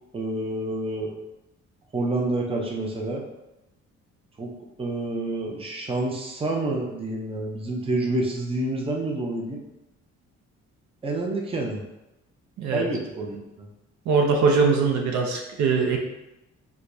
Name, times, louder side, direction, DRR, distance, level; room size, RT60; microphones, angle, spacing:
voice 1, 0.1-1.1 1.9-3.2 4.4-4.5 4.8-9.6 11.0-11.8 12.7-13.7, right 2 dB, 20° right, -1 dB, 0.6 m, -28 dB
voice 2, 14.1-16.0, right 4 dB, 65° right, 1 dB, 0.6 m, -21 dB
4.5 x 2.3 x 2.6 m, 0.94 s
cardioid pair, 90°, 30 cm